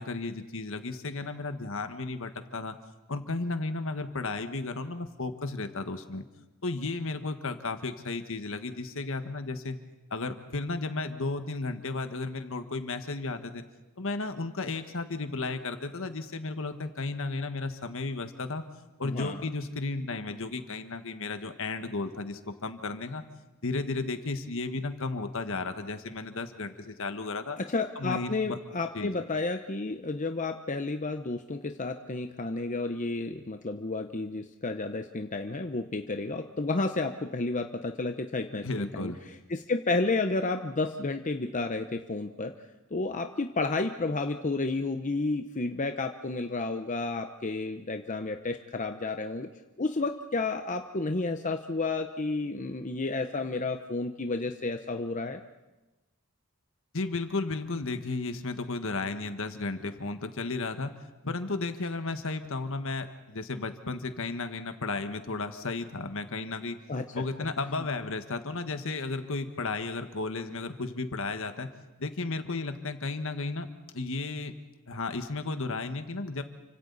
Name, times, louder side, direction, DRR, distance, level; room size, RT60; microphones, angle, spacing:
voice 1, 0.0-2.8 3.1-6.2 6.6-9.8 10.1-13.6 14.0-18.6 19.0-23.2 23.6-27.6 28.0-28.6 28.9-29.2 38.6-39.2 56.9-60.9 61.2-66.8 67.1-71.7 72.0-73.7 73.9-74.5 74.9-76.4, left 3 dB, 65° left, 8 dB, 1.5 m, -34 dB
voice 2, 19.0-19.4 27.6-39.1 39.5-42.5 42.9-49.5 49.8-55.4 66.9-67.2, left 3 dB, 35° left, 6 dB, 0.8 m, -31 dB
30.0 x 25.5 x 4.1 m, 1.1 s
head